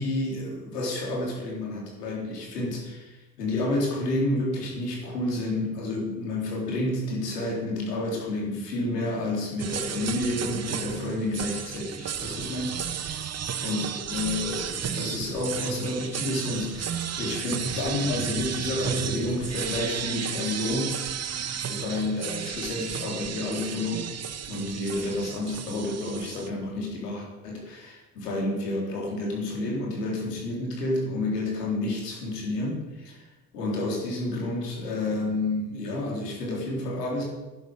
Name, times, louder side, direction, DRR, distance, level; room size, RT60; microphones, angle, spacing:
voice 1, 0.0-13.2 13.6-21.0 21.7-24.0 24.5-33.2 33.5-37.2, left 2 dB, 85° left, -2 dB, 3.6 m, -30 dB
sound 1, 9.6-26.5, right 8 dB, 35° right, 1.0 m, -33 dB
10.5 x 10.5 x 6.4 m, 1.2 s
hypercardioid pair, 60°, 47 cm